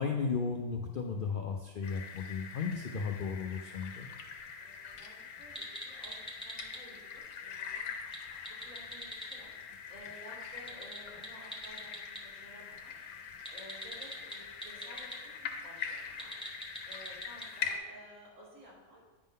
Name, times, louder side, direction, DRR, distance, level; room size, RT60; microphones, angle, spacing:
voice 1, 0.0-4.1, left 5 dB, 70° left, 2 dB, 0.5 m, -35 dB
sound 1, 1.8-17.8, left 6 dB, 85° left, 1.2 m, -44 dB
voice 2, 4.6-7.9 8.6-9.5 9.9-12.9 13.5-16.3 16.8-19.0, equal, 85° right, -7 dB, 3.3 m, -54 dB
sound 2, 5.4-6.8 8.0-9.4 10.6-12.2 13.5-15.2 16.1-17.5, equal, 5° left, 0.7 m, -43 dB
8.9 x 3.7 x 5.2 m, 1.2 s
omnidirectional pair, 1.5 m